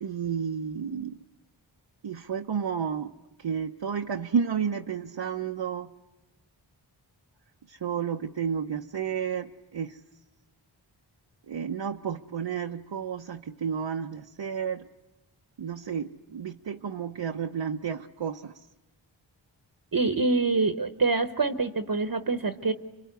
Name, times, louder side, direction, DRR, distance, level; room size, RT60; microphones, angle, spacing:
voice 1, 0.0-1.2 2.0-3.1 3.4-5.9 7.7-10.0 11.5-14.9 15.6-18.5, right 7 dB, 65° right, 3 dB, 0.8 m, -31 dB
voice 2, 19.9-22.7, right 3 dB, 45° right, 8 dB, 1.1 m, -25 dB
27.5 x 23.5 x 8.2 m, 1.1 s
cardioid pair, 50°, 48 cm